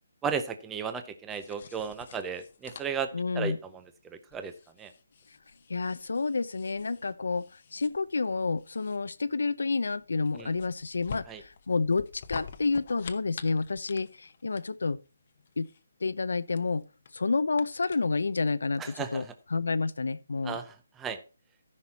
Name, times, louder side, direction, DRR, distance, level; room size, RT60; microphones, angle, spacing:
voice 1, 0.2-3.1 3.3-3.5 4.3-4.5 4.8-4.9 10.4-10.5 11.3-11.4 18.8-19.2 20.4-20.7 21.0-21.2, right 6 dB, 5° right, 0.5 m, -34 dB
sound 1, 1.3-18.5, left 6 dB, 30° left, 0.8 m, -48 dB
voice 2, 3.1-3.6 5.7-15.0 15.6-15.7 16.0-16.8 17.1-20.6, left 4 dB, 80° left, 0.6 m, -29 dB
14.0 x 6.0 x 4.1 m
hypercardioid pair, 180°, 0 cm